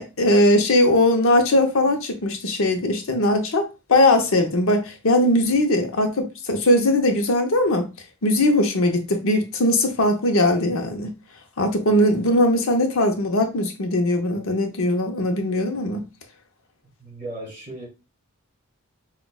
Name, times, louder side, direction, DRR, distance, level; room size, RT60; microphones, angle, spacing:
voice 1, 0.0-7.9 8.2-11.1 11.6-16.0, left 1 dB, 65° left, 0.8 m, -20 dB
voice 2, 17.0-17.9, right 1 dB, 35° right, 2.4 m, -36 dB
6.1 x 2.4 x 2.3 m
head